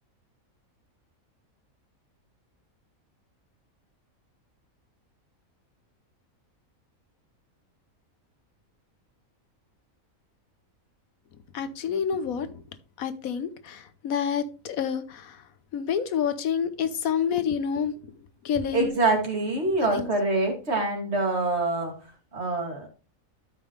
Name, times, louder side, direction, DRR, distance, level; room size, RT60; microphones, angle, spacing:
voice 1, 11.5-12.5 13.0-15.4 15.7-17.9 18.4-18.9 20.0-20.1, left 7 dB, 80° left, 12 dB, 1.3 m, -28 dB
voice 2, 18.7-21.9 22.3-22.9, right 2 dB, 50° right, 1 dB, 2.7 m, -25 dB
12.5 x 5.4 x 3.2 m, 0.33 s
omnidirectional pair, 1.5 m